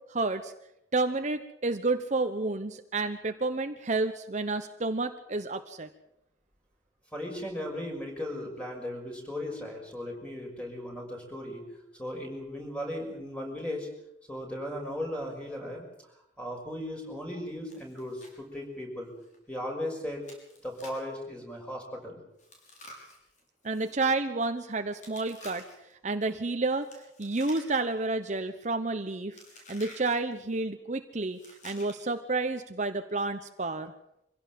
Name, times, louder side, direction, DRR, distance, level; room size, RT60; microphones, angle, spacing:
voice 1, 0.1-0.5 0.9-5.9 23.6-25.6 26.0-26.9 27.2-29.4 29.7-33.9, right 3 dB, 40° right, 8 dB, 1.0 m, -30 dB
voice 2, 7.1-11.6 12.0-13.9 14.3-19.1 19.5-20.3 20.6-22.2, left 1 dB, 5° left, 1 dB, 6.0 m, -37 dB
Chewing mastication, 17.7-18.4 18.6-18.7 19.2-19.4 20.2-21.1 22.4-24.0 25.0-25.9 26.8-28.0 28.3-28.6 29.3-30.2 31.3-32.2, left 1 dB, 45° left, 6.4 m, -51 dB
25.0 x 16.5 x 7.6 m, 0.82 s
head